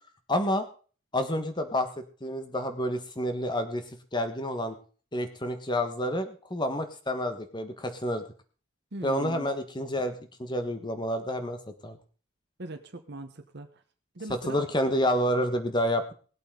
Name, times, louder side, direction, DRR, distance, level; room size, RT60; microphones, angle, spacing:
voice 1, 0.3-0.6 1.1-1.9 2.2-3.8 4.1-4.7 5.1-8.2 9.0-10.1 10.4-11.6 11.8-12.0 14.5-16.1, left 1 dB, 20° left, 7 dB, 1.4 m, -29 dB
voice 2, 8.9-9.5 12.6-13.8 14.1-14.6, right 2 dB, 55° right, 7 dB, 1.0 m, -40 dB
19.5 x 8.3 x 3.8 m, 0.39 s
head